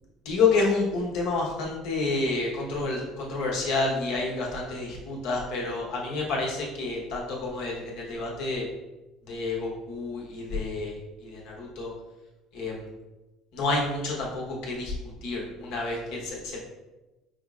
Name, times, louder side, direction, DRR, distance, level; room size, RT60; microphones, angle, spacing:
voice 1, 0.2-8.7 9.2-11.9 12.5-12.9 13.5-14.9 15.2-16.6, left 3 dB, 70° left, -3 dB, 1.0 m, -29 dB
5.2 x 2.0 x 2.4 m, 1.1 s
supercardioid pair, 85°, 0 cm